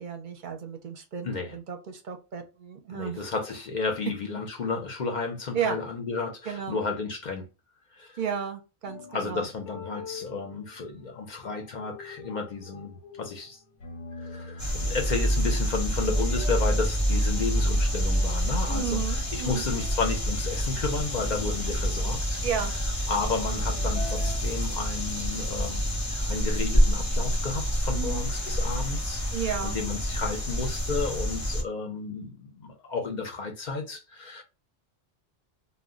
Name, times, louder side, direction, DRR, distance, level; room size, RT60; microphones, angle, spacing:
voice 1, 0.0-3.2 5.5-5.8 6.5-6.8 8.2-9.5 18.6-19.6 22.4-22.7 27.9-28.3 29.3-29.8, right 8 dB, 55° right, 0.6 m, -33 dB
voice 2, 1.2-1.6 2.9-7.5 8.0-8.1 9.1-13.6 14.2-22.4 23.1-29.2 29.6-34.4, left 4 dB, 50° left, 0.6 m, -32 dB
sound 1, 8.9-24.4, left 3 dB, 90° left, 1.0 m, -45 dB
sound 2, 14.6-31.6, equal, 20° left, 0.7 m, -27 dB
2.2 x 2.1 x 3.6 m
omnidirectional pair, 1.2 m